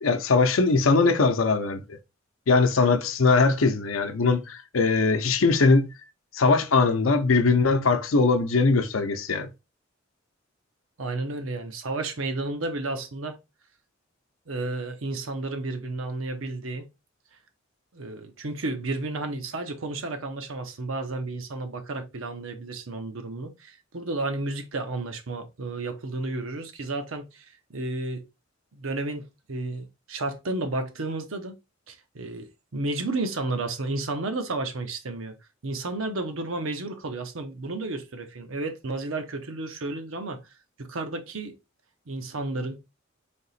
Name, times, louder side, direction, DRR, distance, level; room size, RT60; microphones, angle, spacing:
voice 1, 0.0-2.0 2.5-5.9 6.3-9.5, left 4 dB, 85° left, 0.6 m, -21 dB
voice 2, 11.0-13.4 14.5-16.9 17.9-28.3 28.7-31.5 31.9-35.3 35.6-40.4 40.8-41.6 42.1-42.8, right 2 dB, 80° right, 0.8 m, -32 dB
3.6 x 2.8 x 4.0 m
head